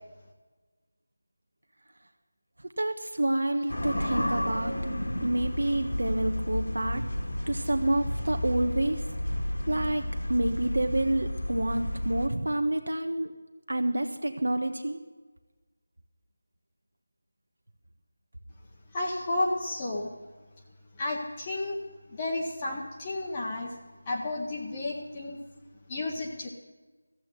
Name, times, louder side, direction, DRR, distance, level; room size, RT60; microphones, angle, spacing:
voice 1, 2.8-4.7 5.2-7.0 7.5-9.0 9.7-13.3 13.7-15.0, right 1 dB, 85° right, 6 dB, 1.2 m, -28 dB
sound 1, 3.7-12.3, left 1 dB, 90° left, 2.3 m, -32 dB
voice 2, 18.9-20.1 21.0-21.8 22.1-23.7 24.1-25.4 25.9-26.5, left 2 dB, 15° left, -1 dB, 0.8 m, -32 dB
14.5 x 8.6 x 7.4 m, 1.3 s
figure-of-eight pair, 180°, 0 cm